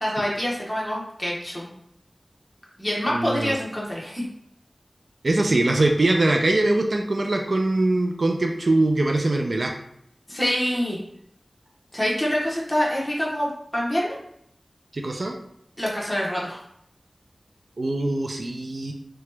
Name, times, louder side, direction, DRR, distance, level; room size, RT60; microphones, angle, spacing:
voice 1, 0.0-1.7 2.8-4.2 10.3-11.0 11.9-14.2 15.8-16.6, equal, 20° left, -4 dB, 0.9 m, -26 dB
voice 2, 3.1-3.5 5.2-9.7 14.9-15.4 17.8-18.9, right 2 dB, 65° right, 3 dB, 0.3 m, -22 dB
2.9 x 2.2 x 3.2 m, 0.71 s
wide cardioid pair, 70°, 0 cm